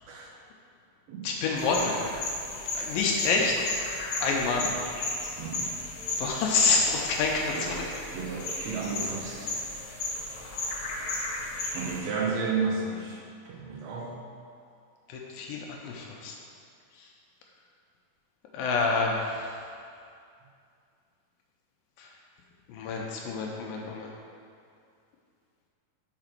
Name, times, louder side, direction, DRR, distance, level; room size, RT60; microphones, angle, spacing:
voice 1, 1.2-2.1 2.8-3.7 4.2-4.7 6.2-7.5 15.1-16.3 18.5-19.5 22.0-22.1 22.7-24.1, left 4 dB, 85° left, -1 dB, 2.3 m, -27 dB
sound 1, 1.6-12.0, left 2 dB, 65° left, 1.2 m, -35 dB
voice 2, 5.4-5.7 7.5-9.5 11.7-14.2 18.6-18.7, right 4 dB, 80° right, -2 dB, 1.6 m, -33 dB
5.8 x 4.8 x 5.9 m, 2.4 s
omnidirectional pair, 4.0 m